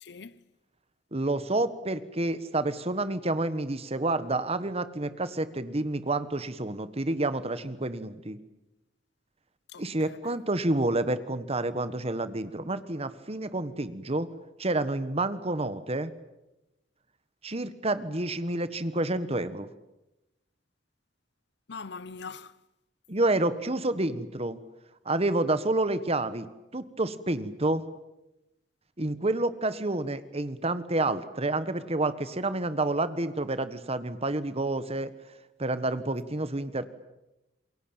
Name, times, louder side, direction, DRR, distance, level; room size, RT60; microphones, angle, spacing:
voice 1, 0.0-0.4 9.7-10.4 21.7-22.6, left 4 dB, 65° left, 0.9 m, -42 dB
voice 2, 1.1-8.4 9.8-14.3 14.6-16.1 17.4-19.7 23.1-24.6 25.0-26.5 26.7-27.8 29.0-35.1 35.6-36.9, right 2 dB, 35° right, 1.5 m, -29 dB
28.0 x 22.5 x 9.0 m
head